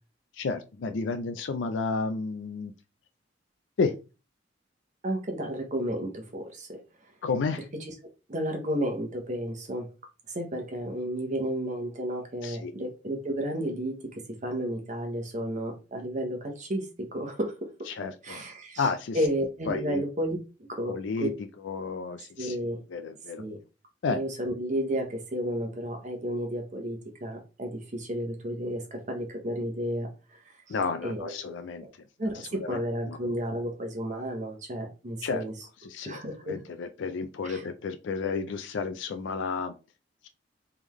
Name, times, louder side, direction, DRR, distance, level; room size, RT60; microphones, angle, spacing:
voice 1, 0.3-2.7 3.8-3.9 7.2-7.7 12.4-12.7 17.9-18.4 18.8-19.2 19.7-20.0 20.9-21.3 21.6-22.6 22.9-23.4 24.0-24.2 30.7-31.9 32.3-33.2 35.2-35.4 35.8-39.7, left 4 dB, 80° left, 8 dB, 0.4 m, -31 dB
voice 2, 5.0-6.8 7.8-7.9 8.3-9.9 10.3-17.7 18.2-18.9 19.1-21.3 22.4-22.8 23.4-23.6 24.1-30.8 31.0-31.9 32.2-35.5 36.0-36.6 37.4-37.6, equal, 40° right, 2 dB, 0.8 m, -32 dB
3.7 x 3.4 x 3.0 m, 0.31 s
head